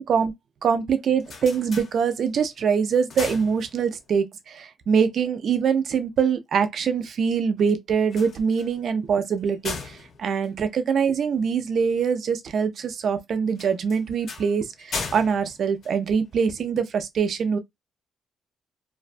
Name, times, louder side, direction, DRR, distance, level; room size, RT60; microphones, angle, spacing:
voice 1, 0.0-0.3 0.6-17.6, right 6 dB, 55° right, 0.4 m, -24 dB
sound 1, 1.0-2.5 2.9-4.2 8.0-11.4 13.5-16.6, left 4 dB, 55° left, 0.7 m, -38 dB
2.5 x 2.2 x 2.4 m
cardioid pair, 140°, 0 cm